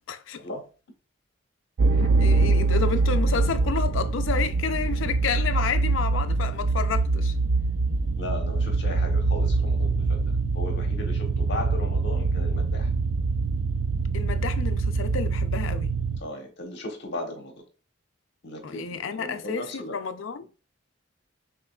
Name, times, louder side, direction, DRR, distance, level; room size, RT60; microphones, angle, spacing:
voice 1, 0.1-0.4 2.2-7.3 14.1-15.9 18.6-20.5, left 6 dB, 75° left, 0.5 m, -30 dB
sound 1, 1.8-16.2, right 3 dB, 75° right, 0.4 m, -24 dB
voice 2, 8.2-10.2 10.5-12.9 16.2-17.5 18.4-20.0, left 2 dB, 60° left, 1.1 m, -36 dB
5.9 x 3.1 x 2.3 m
head